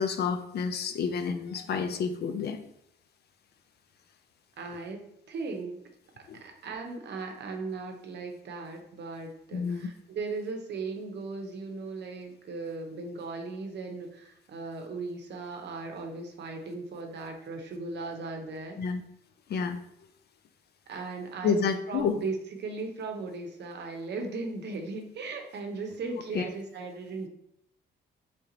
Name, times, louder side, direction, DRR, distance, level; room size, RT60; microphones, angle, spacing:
voice 1, 0.0-2.6 6.3-6.4 9.5-9.9 18.8-19.0 19.5-19.8 21.4-22.2 26.3-26.4, left 6 dB, 55° left, 8 dB, 0.5 m, -29 dB
voice 2, 4.6-5.8 6.2-18.9 20.9-27.3, right 3 dB, 60° right, 3 dB, 0.8 m, -37 dB
3.4 x 2.8 x 3.9 m, 0.74 s
cardioid pair, 90°, 20 cm